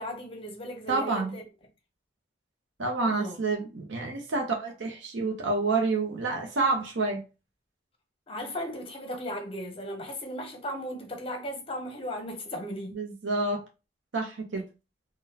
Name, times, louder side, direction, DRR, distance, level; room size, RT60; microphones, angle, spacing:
voice 1, 0.0-1.4 3.1-3.4 8.3-13.0, equal, 30° left, 0.8 m, -36 dB
voice 2, 0.9-1.3 2.8-7.2 12.9-13.7 14.1-14.7, right 3 dB, 75° right, 0.7 m, -28 dB
3.8 x 2.2 x 2.7 m
head